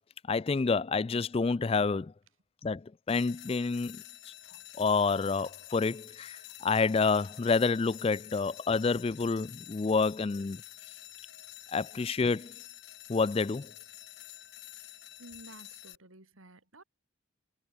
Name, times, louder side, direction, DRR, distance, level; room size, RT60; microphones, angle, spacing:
voice 1, 0.3-2.1 2.6-4.0 4.8-10.6 11.7-12.5 13.1-13.7, left 4 dB, 25° left, 0.3 m, -28 dB
sound 1, 3.1-15.9, left 14 dB, 55° left, 1.8 m, -49 dB
voice 2, 15.2-16.8, right 1 dB, 85° right, 4.8 m, -53 dB
head